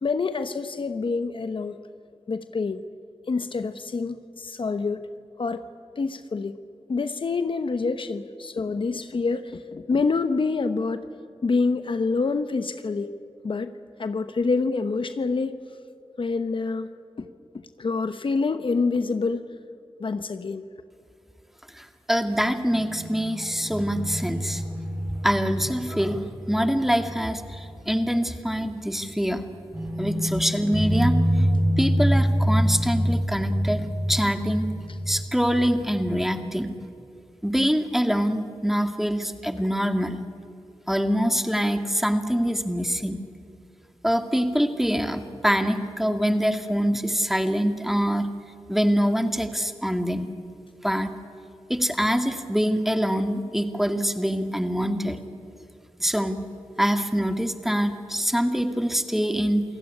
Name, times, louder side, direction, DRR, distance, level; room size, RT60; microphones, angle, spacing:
voice 1, 0.0-1.8 2.3-2.8 3.3-5.0 5.4-5.6 6.0-6.6 6.9-11.0 11.4-13.2 13.4-13.7 14.0-15.6 16.2-16.9 17.2-17.3 17.5-19.5 20.0-20.7 28.6-28.7, left 4 dB, 60° left, 10 dB, 1.0 m, -26 dB
voice 2, 21.8-24.6 25.2-29.4 30.0-34.7 35.1-36.8 37.4-40.2 40.9-43.2 44.0-48.3 48.7-50.3 50.8-51.2 51.7-55.2 56.0-56.5 56.8-59.6, equal, 5° right, 7 dB, 2.1 m, -25 dB
sound 1, 22.7-28.1 28.4-28.5 29.7-36.3, equal, 30° right, 6.7 m, -26 dB
28.0 x 16.5 x 10.0 m, 2.5 s
cardioid pair, 55°, 10 cm